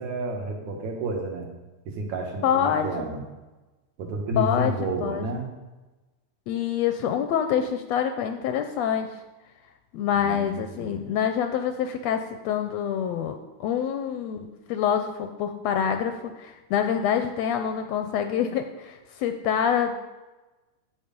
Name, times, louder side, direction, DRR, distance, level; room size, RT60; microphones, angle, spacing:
voice 1, 0.0-1.5 1.9-3.2 4.0-5.4 10.1-10.9, right 2 dB, 75° right, 1 dB, 2.8 m, -30 dB
voice 2, 2.4-2.9 4.4-4.7 5.0-5.2 6.5-9.1 9.9-20.0, left 8 dB, 80° left, 7 dB, 1.6 m, -26 dB
10.0 x 7.6 x 5.2 m, 1.1 s
omnidirectional pair, 3.4 m